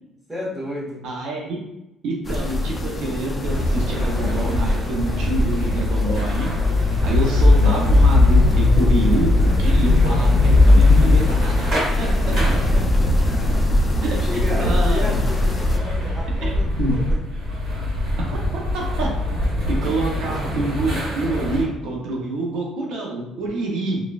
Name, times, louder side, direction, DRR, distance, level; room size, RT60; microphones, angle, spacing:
voice 1, 0.3-1.0 12.0-13.6 14.2-17.2 17.4-18.1, left 1 dB, 10° right, -6 dB, 1.1 m, -33 dB
voice 2, 1.0-1.6 2.0-9.3 9.6-11.7 12.0-12.1 14.0-15.2 16.4-16.5 16.8-17.0 18.7-19.1 19.7-24.0, right 2 dB, 75° right, -1 dB, 0.7 m, -27 dB
sound 1, 2.2-15.8, left 3 dB, 20° left, 0.3 m, -25 dB
sound 2, 3.4-21.6, left 1 dB, 50° right, 1.2 m, -24 dB
sound 3, 5.7-11.2, left 2 dB, 60° left, 0.7 m, -17 dB
3.9 x 2.3 x 2.4 m, 0.91 s
cardioid pair, 140°, 0 cm